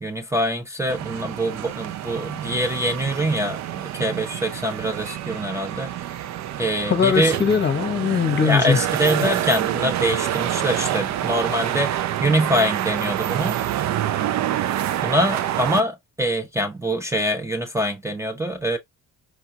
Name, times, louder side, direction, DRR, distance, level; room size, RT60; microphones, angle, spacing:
voice 1, 0.0-5.9 6.6-7.4 8.4-13.6 15.0-18.8, equal, 10° right, 0.6 m, -24 dB
sound 1, 0.9-15.8, right 12 dB, 65° right, 0.4 m, -27 dB
voice 2, 6.9-8.8, left 7 dB, 35° left, 0.8 m, -20 dB
4.7 x 2.3 x 2.7 m
cardioid pair, 90°, 30 cm